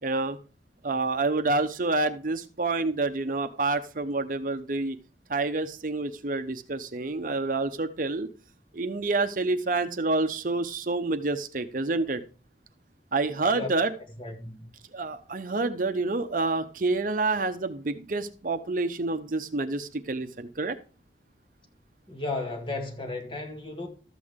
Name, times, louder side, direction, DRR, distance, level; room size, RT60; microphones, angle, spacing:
voice 1, 0.0-0.4 0.8-5.0 5.3-8.3 8.7-12.2 13.1-13.9 14.9-20.8, right 3 dB, 50° right, 0.8 m, -28 dB
voice 2, 14.2-14.7 22.1-23.9, left 2 dB, 30° left, 2.2 m, -34 dB
13.0 x 8.4 x 3.6 m
head